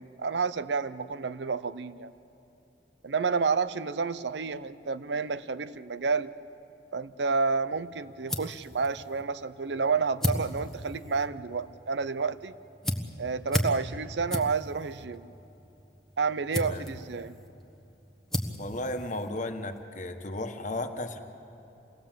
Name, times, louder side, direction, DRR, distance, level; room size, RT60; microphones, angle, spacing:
voice 1, 0.0-2.1 3.0-6.3 6.9-12.5 13.2-15.3 16.2-17.4, right 5 dB, 80° right, 14 dB, 0.7 m, -30 dB
sound 1, 7.7-19.8, equal, 5° left, 1.3 m, -37 dB
voice 2, 16.5-16.9 18.6-21.2, left 1 dB, 45° left, 6 dB, 1.4 m, -34 dB
27.5 x 19.0 x 7.6 m, 2.9 s
head